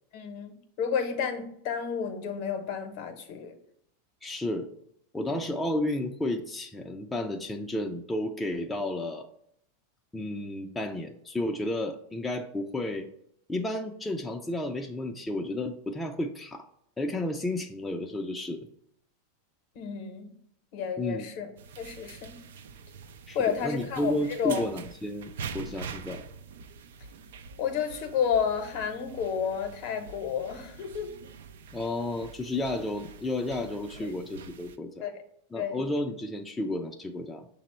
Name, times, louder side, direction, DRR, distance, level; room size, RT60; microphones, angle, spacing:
voice 1, 0.1-3.5 5.3-5.5 19.7-20.3 20.7-22.4 23.3-24.7 27.6-31.1 34.0-34.1 35.0-35.2 35.6-35.9, left 7 dB, 55° left, 6 dB, 0.7 m, -31 dB
voice 2, 4.2-4.7 5.1-9.3 10.1-13.1 13.5-16.7 17.0-18.6 21.0-21.2 23.3-26.2 31.7-35.1 35.5-37.5, left 1 dB, 10° left, 2 dB, 0.3 m, -32 dB
sound 1, 21.6-34.8, right 5 dB, 80° right, 0.3 m, -45 dB
5.7 x 2.0 x 4.2 m, 0.70 s
hypercardioid pair, 115°, 0 cm